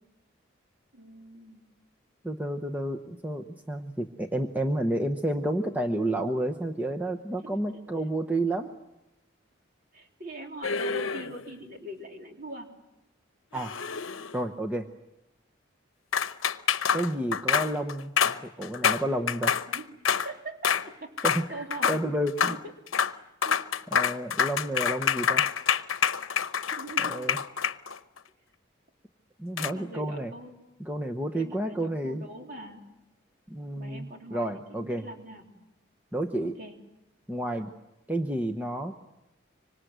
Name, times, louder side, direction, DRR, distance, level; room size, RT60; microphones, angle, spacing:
voice 1, 0.9-1.6 7.5-7.8 9.9-12.7 19.7-22.0 22.4-22.7 23.0-23.7 26.7-27.4 29.6-30.6 31.3-32.8 33.8-35.5 36.4-36.7, right 1 dB, 45° right, 2 dB, 3.5 m, -43 dB
voice 2, 2.2-8.7 13.5-13.7 14.3-14.9 16.9-19.5 21.2-22.6 23.9-25.5 27.0-27.4 29.4-30.3 30.8-32.2 33.5-35.1 36.1-36.5 37.3-37.7 38.1-39.1, right 1 dB, 10° right, 4 dB, 0.9 m, -30 dB
sound 1, 10.6-11.5 13.5-14.5 16.1-20.3 20.6-20.9 21.2-21.5 21.7-22.0 22.3-22.6 22.9-23.1 23.4-28.2 29.6-29.7, left 7 dB, 85° left, 0.8 m, -27 dB
25.5 x 25.0 x 8.1 m, 0.92 s
head